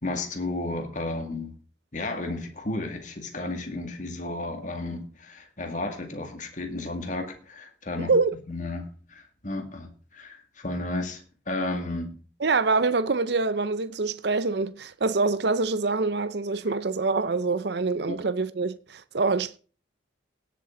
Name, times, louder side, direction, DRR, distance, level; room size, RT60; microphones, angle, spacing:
voice 1, 0.0-1.5 1.9-8.1 8.5-12.1 18.1-18.2, left 2 dB, 40° left, 2.2 m, -33 dB
voice 2, 8.0-8.3 12.4-19.6, right 3 dB, 60° right, 0.6 m, -25 dB
17.5 x 7.8 x 3.8 m
head